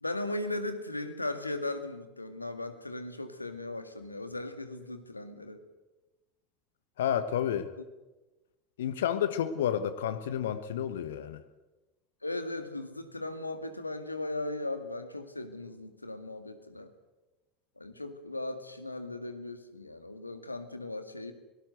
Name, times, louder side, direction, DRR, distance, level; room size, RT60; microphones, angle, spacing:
voice 1, 0.0-5.6 12.2-16.9 17.8-21.3, left 2 dB, 85° left, 8 dB, 1.9 m, -37 dB
voice 2, 7.0-7.7 8.8-11.4, left 9 dB, 65° left, 12 dB, 1.2 m, -30 dB
23.0 x 18.5 x 8.0 m, 1.1 s
figure-of-eight pair, 75°, 0 cm